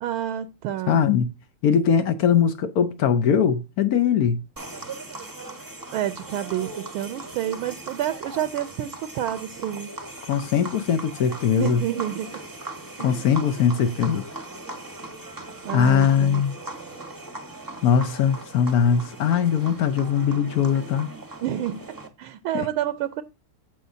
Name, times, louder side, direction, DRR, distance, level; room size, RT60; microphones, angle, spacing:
voice 1, 0.0-1.0 5.9-9.9 11.6-12.3 13.0-13.3 15.6-16.4 21.4-21.8 22.2-23.2, right 11 dB, 75° right, 1.4 m, -29 dB
voice 2, 0.9-1.3 1.6-4.4 10.2-11.8 13.0-14.2 15.7-16.5 17.8-21.1 22.5-22.7, left 7 dB, 80° left, 0.8 m, -21 dB
sound 1, 4.6-22.1, right 2 dB, 15° right, 0.6 m, -39 dB
15.0 x 5.1 x 2.7 m
omnidirectional pair, 2.4 m